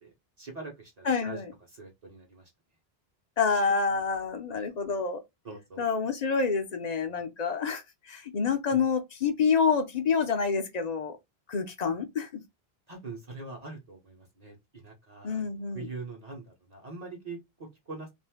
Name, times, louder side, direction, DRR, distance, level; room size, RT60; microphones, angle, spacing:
voice 1, 0.0-1.4 1.7-2.5 5.4-5.9 8.7-8.8 12.9-15.4 15.7-18.1, right 3 dB, 40° right, 0.9 m, -43 dB
voice 2, 1.0-1.5 3.4-5.2 5.8-11.2 11.5-12.4 15.2-15.9, left 5 dB, 50° left, 0.6 m, -28 dB
2.5 x 2.5 x 3.4 m
omnidirectional pair, 1.0 m